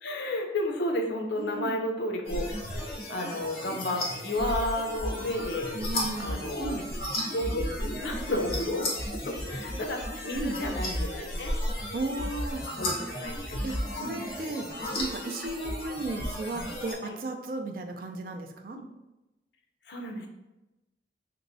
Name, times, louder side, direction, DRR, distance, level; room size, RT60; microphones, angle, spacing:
voice 1, 0.0-2.5 3.1-5.7 6.2-6.8 7.3-8.9 9.3-11.5 12.8-14.3 17.0-17.1 18.7-18.8 19.9-20.3, left 1 dB, 80° left, 3 dB, 0.6 m, -32 dB
voice 2, 1.4-1.8 5.7-6.9 10.3-10.6 11.9-12.7 13.6-14.7 15.0-18.8, right 2 dB, 50° right, 5 dB, 0.3 m, -35 dB
sound 1, 2.2-16.9, left 1 dB, 55° left, 1.0 m, -34 dB
3.4 x 3.0 x 2.6 m, 0.99 s
head